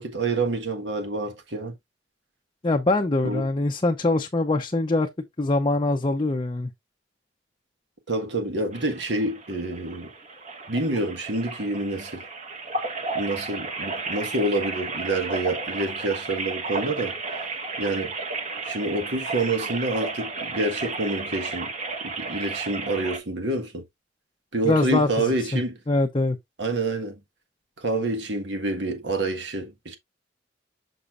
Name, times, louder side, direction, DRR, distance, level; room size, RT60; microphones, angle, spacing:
voice 1, 0.0-1.7 3.2-3.5 8.1-10.1 10.7-12.2 13.1-17.1 17.8-18.1 18.6-21.7 22.0-23.8 24.5-25.8 26.6-27.2 27.8-30.0, right 2 dB, 70° right, 1.5 m, -27 dB
voice 2, 2.6-5.1 5.4-6.7 24.6-25.1 25.5-25.6 25.9-26.4, left 2 dB, 25° left, 0.6 m, -23 dB
sound 1, 8.7-23.2, right 3 dB, 40° right, 1.4 m, -33 dB
6.7 x 6.2 x 2.5 m
head